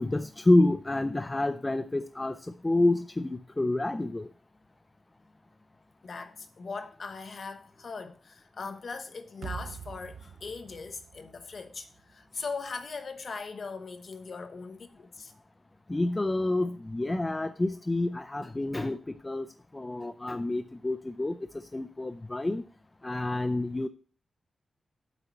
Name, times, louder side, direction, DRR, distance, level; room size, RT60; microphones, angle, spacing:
voice 1, 0.0-2.4 2.6-4.3 15.9-19.0 19.2-19.5 19.7-21.4 21.7-22.6 23.0-23.9, left 2 dB, 20° left, 0.4 m, -28 dB
voice 2, 6.0-15.3, left 4 dB, 50° left, 1.0 m, -40 dB
sound 1, 9.4-12.5, right 7 dB, 65° right, 0.7 m, -44 dB
8.1 x 4.4 x 7.0 m
wide cardioid pair, 130°, 0 cm